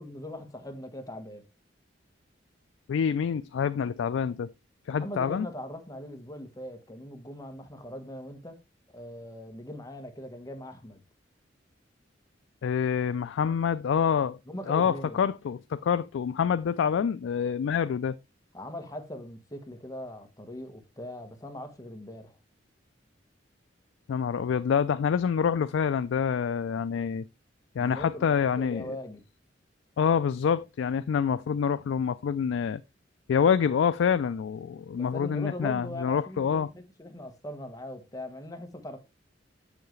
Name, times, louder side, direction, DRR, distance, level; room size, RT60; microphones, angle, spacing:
voice 1, 0.0-1.4 4.9-8.6 8.9-11.0 14.5-15.2 18.5-22.4 27.8-29.2 34.9-39.0, left 1 dB, 20° left, 1.1 m, -40 dB
voice 2, 2.9-4.5 4.9-5.5 12.6-14.4 14.7-18.2 24.1-27.2 27.8-28.9 30.0-32.8 33.3-36.7, left 7 dB, 80° left, 0.3 m, -26 dB
7.0 x 6.5 x 3.1 m
head